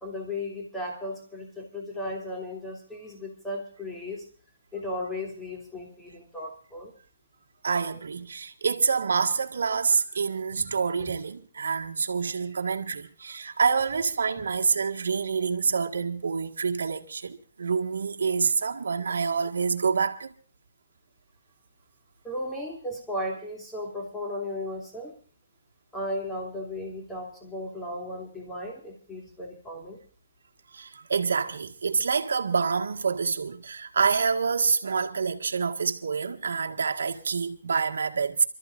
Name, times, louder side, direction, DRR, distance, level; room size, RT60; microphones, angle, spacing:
voice 1, 0.0-4.2 4.7-6.9 22.2-25.1 25.9-30.0, left 1 dB, 5° left, 3.0 m, -35 dB
voice 2, 7.6-20.3 30.7-38.4, right 5 dB, 80° right, 1.8 m, -27 dB
28.5 x 13.5 x 2.6 m
hypercardioid pair, 165°, 0 cm